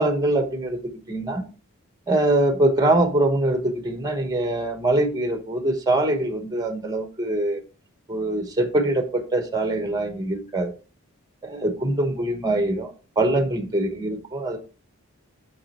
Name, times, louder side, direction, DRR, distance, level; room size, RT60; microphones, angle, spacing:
voice 1, 0.0-1.4 2.1-7.6 8.1-10.7 11.4-12.9 13.2-14.6, right 1 dB, 15° right, 1.0 m, -23 dB
6.2 x 6.1 x 4.2 m
head